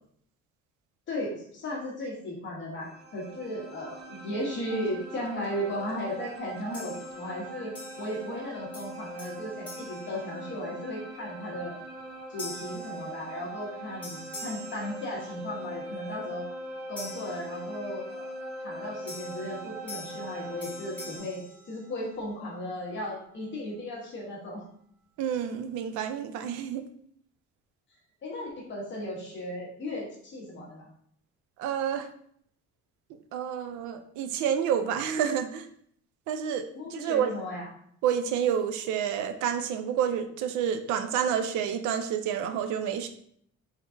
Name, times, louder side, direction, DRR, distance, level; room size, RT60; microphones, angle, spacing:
voice 1, 1.1-11.7 12.3-16.5 16.9-18.4 18.6-21.4 21.7-24.6 28.2-30.9 36.7-37.7, left 1 dB, 40° left, -3 dB, 1.1 m, -36 dB
sound 1, 2.8-21.2, right 1 dB, 35° right, 0.6 m, -41 dB
sound 2, 6.7-7.4 7.7-8.4 8.7-10.9 11.4-11.7 12.4-13.7 14.0-15.6 17.0-18.1 19.1-22.3, left 2 dB, 5° left, 1.4 m, -46 dB
voice 2, 25.2-26.8 31.6-32.1 33.3-35.7 36.3-36.6 36.9-37.3 38.0-43.1, right 8 dB, 85° right, 9 dB, 0.5 m, -29 dB
3.7 x 3.6 x 2.6 m, 0.65 s
cardioid pair, 165°, 29 cm